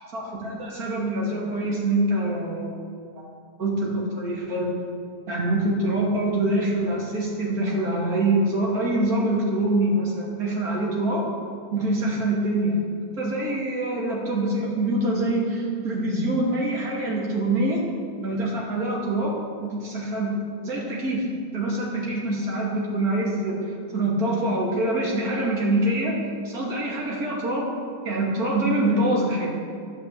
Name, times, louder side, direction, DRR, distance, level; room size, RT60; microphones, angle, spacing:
voice 1, 0.0-2.9 3.6-4.7 5.3-11.3 11.7-12.8 13.2-17.8 18.2-19.3 19.6-20.3 20.6-21.2 21.5-27.7 28.0-29.5, right 1 dB, 60° right, -3 dB, 3.1 m, -25 dB
10.5 x 9.3 x 7.6 m, 2.2 s
omnidirectional pair, 1.8 m